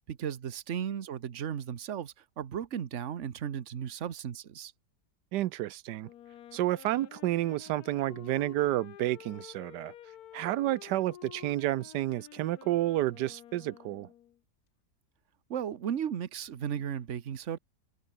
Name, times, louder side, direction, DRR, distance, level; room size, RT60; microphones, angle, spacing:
voice 1, 0.0-4.7 15.5-17.6, right 8 dB, 50° right, 1.3 m, -35 dB
voice 2, 5.3-6.1 6.5-9.9 10.3-14.1, right 15 dB, 90° right, 1.2 m, -30 dB
Wind instrument woodwind instrument, 6.0-14.4, left 11 dB, 65° left, 1.3 m, -51 dB
omnidirectional pair, 1.8 m